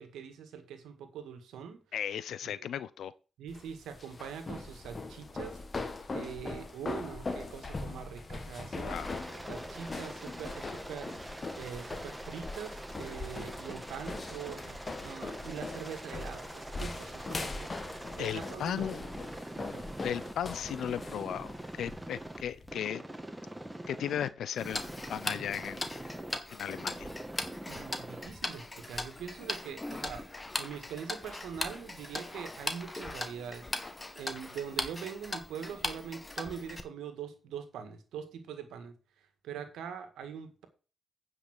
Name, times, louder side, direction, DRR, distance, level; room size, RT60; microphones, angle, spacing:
voice 1, 0.0-1.8 2.4-2.7 3.4-5.6 6.1-9.0 9.5-11.2 11.6-17.7 18.2-19.0 19.6-19.9 27.7-30.3 30.6-33.7 34.2-38.9 39.4-40.7, right 7 dB, 80° right, 8 dB, 1.8 m, -43 dB
voice 2, 1.9-3.1 8.9-9.1 18.2-19.1 20.0-23.0 23.9-26.0 26.5-27.1, left 9 dB, 75° left, 17 dB, 0.6 m, -36 dB
sound 1, 3.5-22.7, left 3 dB, 45° left, 2.0 m, -41 dB
Aircraft, 8.9-20.3 20.7-22.4 22.7-24.3 24.6-26.4 26.7-28.3, right 1 dB, 10° right, 2.0 m, -44 dB
Tick-tock, 24.6-36.8, left 2 dB, 30° left, 1.7 m, -39 dB
9.6 x 6.0 x 6.1 m, 0.34 s
hypercardioid pair, 40°, 0 cm